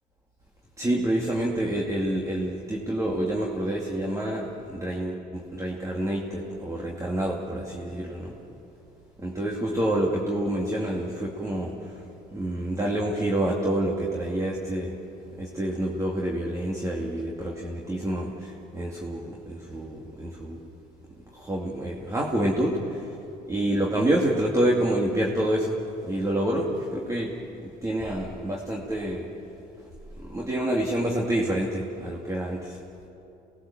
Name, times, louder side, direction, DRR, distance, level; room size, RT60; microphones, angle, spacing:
voice 1, 0.8-8.3 9.2-12.0 12.3-14.9 15.4-20.6 21.3-23.1 23.5-25.8 26.0-27.3 27.6-29.3 30.2-32.8, right 1 dB, 20° right, -2 dB, 2.5 m, -28 dB
29.0 x 19.5 x 7.3 m, 3.0 s
cardioid pair, 110°, 17 cm